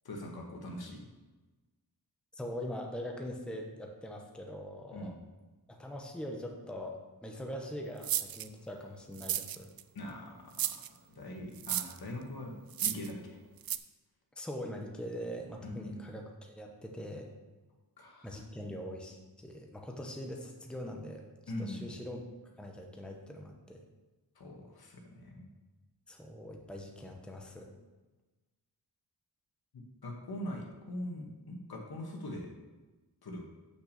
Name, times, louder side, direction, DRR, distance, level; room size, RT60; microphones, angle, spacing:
voice 1, 0.0-1.1 4.9-5.1 9.9-12.5 12.8-13.4 15.6-16.1 18.0-18.4 21.5-21.9 24.3-25.5 30.0-32.5 33.2-33.4, left 1 dB, 70° left, 1 dB, 1.6 m, -42 dB
voice 2, 2.3-5.1 5.7-9.7 14.4-17.3 18.2-21.3 21.6-22.2 22.6-23.8 26.1-27.7, equal, ahead, 1 dB, 0.9 m, -42 dB
sound 1, 8.0-8.5 9.2-9.8 10.5-10.9 11.6-12.0 12.7-13.1 13.6-13.8, right 11 dB, 65° right, 0.5 m, -33 dB
6.4 x 6.0 x 6.7 m, 1.2 s
wide cardioid pair, 155°, 39 cm